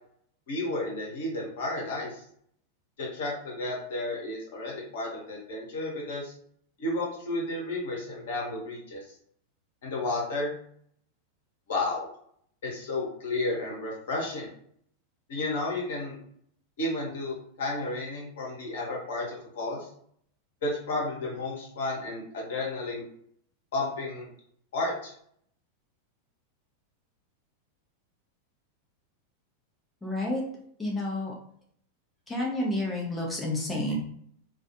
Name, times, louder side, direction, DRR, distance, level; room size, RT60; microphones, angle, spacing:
voice 1, 0.5-2.2 3.0-6.3 6.8-9.0 9.8-10.5 11.7-12.1 12.6-14.5 15.3-16.1 16.8-19.8 20.6-23.0 23.7-24.3 24.7-25.1, left 2 dB, 60° left, -2 dB, 0.9 m, -32 dB
voice 2, 30.0-30.4 30.8-31.3 32.3-34.0, left 1 dB, 10° left, -3 dB, 0.6 m, -30 dB
2.4 x 2.3 x 2.5 m, 0.63 s
figure-of-eight pair, 90°, 0 cm